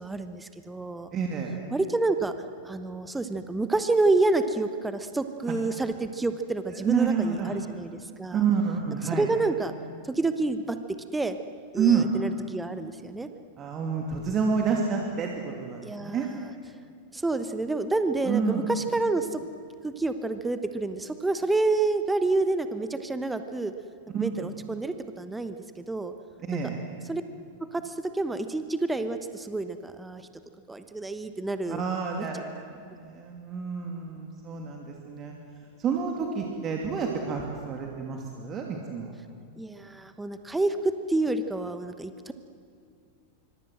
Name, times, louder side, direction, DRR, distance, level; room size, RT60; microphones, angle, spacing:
voice 1, 0.0-1.1 1.7-2.3 2.6-8.4 9.1-9.7 10.0-10.8 11.1-11.4 11.7-13.3 15.8-16.5 17.1-19.4 19.8-23.7 24.1-26.1 27.1-27.2 27.6-30.2 30.7-31.8 32.3-32.4 39.6-42.3, right 2 dB, 10° right, 9 dB, 1.1 m, -28 dB
voice 2, 1.1-1.5 6.7-7.6 8.3-9.3 11.7-12.1 13.6-16.3 18.2-18.7 24.1-24.2 26.5-26.8 31.7-35.3 35.8-39.1, right 6 dB, 30° right, 1 dB, 2.6 m, -28 dB
26.0 x 24.5 x 7.8 m, 2.3 s
figure-of-eight pair, 90°, 0 cm